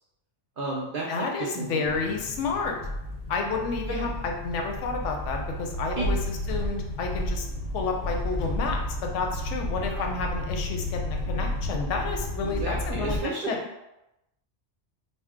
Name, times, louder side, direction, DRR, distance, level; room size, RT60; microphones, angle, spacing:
voice 1, 0.6-2.0 3.8-4.1 6.0-6.1 9.8-10.0 12.4-13.8, right 3 dB, 60° right, -4 dB, 0.6 m, -33 dB
voice 2, 1.1-2.8 3.3-7.5 7.7-13.6, left 4 dB, 90° left, 2 dB, 0.9 m, -30 dB
sound 1, 1.8-13.2, left 1 dB, 60° left, 0.6 m, -32 dB
2.7 x 2.0 x 3.5 m, 0.90 s
omnidirectional pair, 1.2 m